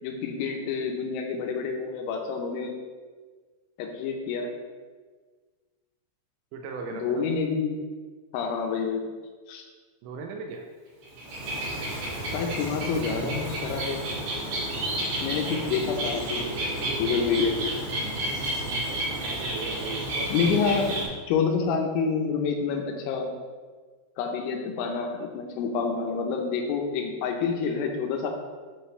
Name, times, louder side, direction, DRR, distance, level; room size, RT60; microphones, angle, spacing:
voice 1, 0.0-2.8 3.8-4.5 6.9-7.8 8.3-9.1 9.5-9.6 12.2-14.0 15.2-16.5 17.0-17.6 20.3-23.3 24.2-28.3, left 5 dB, 85° left, 3 dB, 3.3 m, -28 dB
voice 2, 6.5-7.3 10.0-10.7 18.5-20.7, right 4 dB, 80° right, 2 dB, 2.8 m, -38 dB
Bird, 11.0-21.0, right 1 dB, 55° right, 3.6 m, -31 dB
10.5 x 4.5 x 3.2 m, 1.5 s
omnidirectional pair, 5.4 m